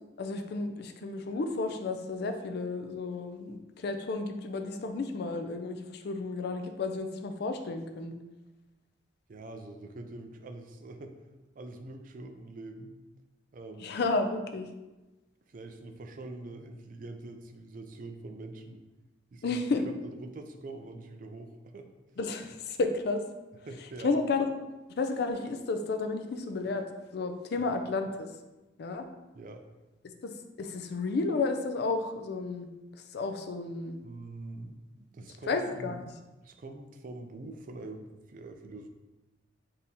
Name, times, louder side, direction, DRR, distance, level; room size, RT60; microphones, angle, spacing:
voice 1, 0.2-8.1 13.8-14.7 19.4-19.8 22.2-23.2 24.0-24.5 25.0-28.3 28.8-29.1 30.2-30.3 30.6-32.7 32.9-34.0 35.5-36.0, left 3 dB, 55° left, 7 dB, 0.4 m, -32 dB
voice 2, 9.3-11.2 11.6-12.9 13.5-14.0 15.5-18.8 19.3-19.6 20.2-21.9 23.7-24.1 27.6-27.7 29.3-29.6 34.0-36.0 36.4-38.9, right 2 dB, 40° right, 5 dB, 0.4 m, -44 dB
4.1 x 2.7 x 3.6 m, 1.1 s
head